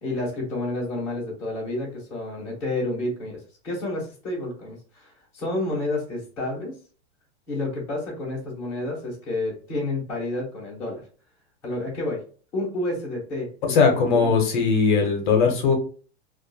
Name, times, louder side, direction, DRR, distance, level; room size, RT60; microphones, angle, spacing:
voice 1, 0.0-6.8 7.5-11.0 11.6-12.2 12.5-13.8 14.1-14.4, left 2 dB, 10° left, -8 dB, 0.6 m, -30 dB
voice 2, 13.7-15.7, left 5 dB, 45° left, 2 dB, 0.6 m, -19 dB
2.5 x 2.2 x 2.5 m, 0.40 s
supercardioid pair, 175°, 34 cm